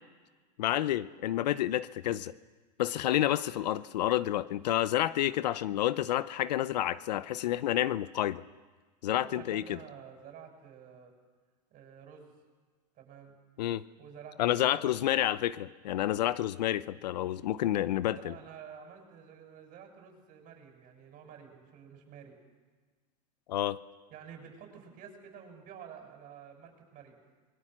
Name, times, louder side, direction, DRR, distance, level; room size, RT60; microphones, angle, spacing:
voice 1, 0.6-2.3 2.8-8.4 9.0-9.8 13.6-13.8 14.4-18.3 23.5-23.8, left 13 dB, 80° left, 16 dB, 0.8 m, -29 dB
voice 2, 9.1-11.1 11.7-12.3 12.9-13.3 13.9-14.9 18.1-22.3 24.1-27.2, right 7 dB, 40° right, 3 dB, 6.8 m, -50 dB
29.0 x 22.5 x 6.2 m, 1.4 s
hypercardioid pair, 120°, 21 cm